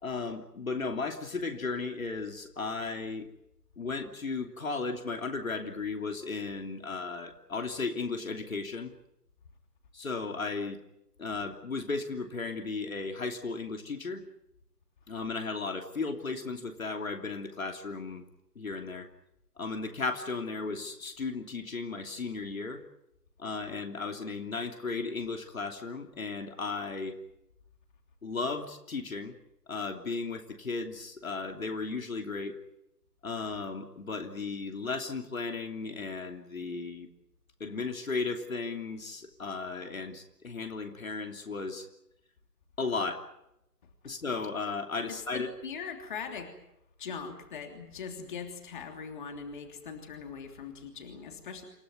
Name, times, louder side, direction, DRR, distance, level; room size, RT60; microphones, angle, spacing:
voice 1, 0.0-3.3 3.8-8.9 9.9-10.8 11.2-14.2 15.1-18.2 18.5-19.1 19.6-22.8 23.4-27.1 28.2-29.4 29.7-32.6 33.2-37.1 37.6-41.9 42.8-43.3 44.0-45.5, left 4 dB, 55° left, 4 dB, 3.1 m, -35 dB
voice 2, 45.1-46.5 47.0-51.6, left 6 dB, 30° left, 5 dB, 3.2 m, -41 dB
28.0 x 16.0 x 9.5 m, 0.83 s
figure-of-eight pair, 150°, 47 cm